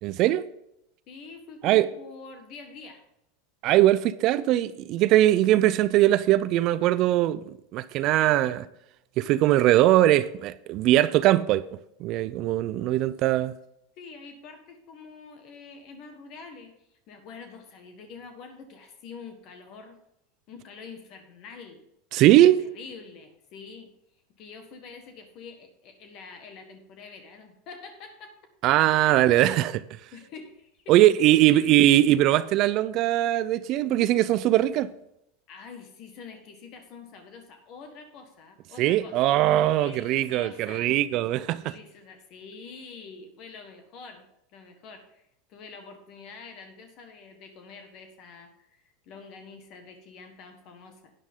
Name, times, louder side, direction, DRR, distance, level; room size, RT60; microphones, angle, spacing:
voice 1, 0.0-0.4 1.6-1.9 3.6-8.7 9.2-11.6 12.0-13.5 22.1-22.6 28.6-29.8 30.9-34.9 38.8-41.7, right 14 dB, 50° right, 0.4 m, -21 dB
voice 2, 1.1-3.0 14.0-20.0 20.5-21.8 22.3-23.9 24.4-28.4 28.9-29.3 30.1-31.0 31.3-31.8 35.5-39.2 39.8-40.9 41.6-44.2 44.5-51.1, left 4 dB, 50° left, 1.5 m, -46 dB
11.5 x 9.2 x 3.7 m
hypercardioid pair, 110°, 0 cm